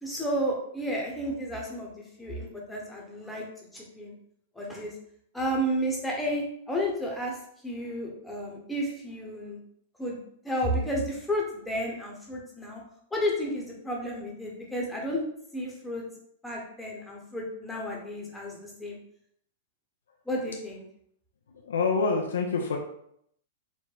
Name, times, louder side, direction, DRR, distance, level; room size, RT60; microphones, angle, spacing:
voice 1, 0.0-1.9 2.2-3.4 3.7-4.1 4.5-4.9 5.3-7.3 7.6-9.6 10.0-10.2 10.4-12.8 13.1-15.2 15.5-16.0 16.4-19.0 20.3-20.8, equal, 5° left, -2 dB, 1.0 m, -32 dB
voice 2, 21.6-22.8, left 4 dB, 90° left, 1 dB, 0.6 m, -26 dB
4.6 x 2.1 x 3.9 m, 0.68 s
hypercardioid pair, 135°, 0 cm